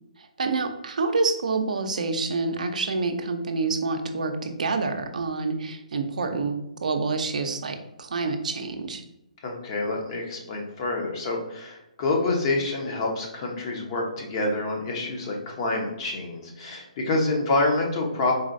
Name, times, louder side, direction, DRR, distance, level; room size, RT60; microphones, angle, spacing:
voice 1, 0.2-9.0, right 3 dB, 70° right, 6 dB, 0.5 m, -27 dB
voice 2, 9.4-18.3, left 2 dB, 40° left, 1 dB, 0.8 m, -27 dB
4.0 x 3.0 x 2.6 m, 0.87 s
hypercardioid pair, 140°, 4 cm